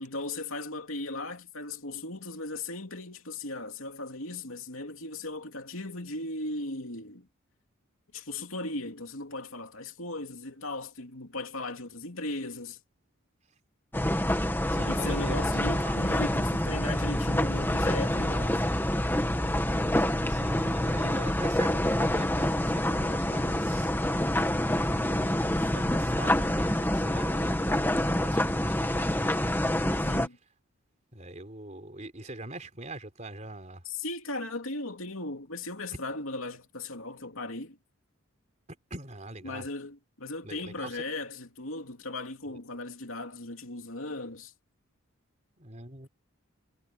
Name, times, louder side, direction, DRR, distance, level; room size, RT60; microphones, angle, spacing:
voice 1, 0.0-7.3 8.1-12.8 14.9-18.6 30.1-30.4 33.8-37.8 39.4-44.5, left 2 dB, 70° left, 3.0 m, -37 dB
sound 1, 13.9-30.3, left 1 dB, 10° left, 1.9 m, -27 dB
voice 2, 14.7-16.0 20.3-24.0 24.3-29.4 29.9-30.0 31.1-33.8 38.7-39.7 40.4-41.0 42.5-42.6 45.6-46.1, right 2 dB, 35° right, 4.2 m, -43 dB
head